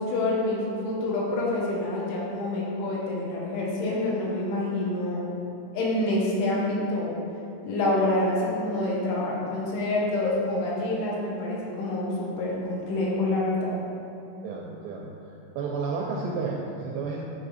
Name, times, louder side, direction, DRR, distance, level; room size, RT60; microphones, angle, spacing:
voice 1, 0.0-5.3 5.7-7.2 7.7-13.8, left 2 dB, 80° left, -4 dB, 3.7 m, -27 dB
voice 2, 14.4-15.1 15.6-17.2, right 4 dB, 85° right, -2 dB, 2.4 m, -31 dB
9.9 x 5.0 x 4.1 m, 2.8 s
omnidirectional pair, 5.5 m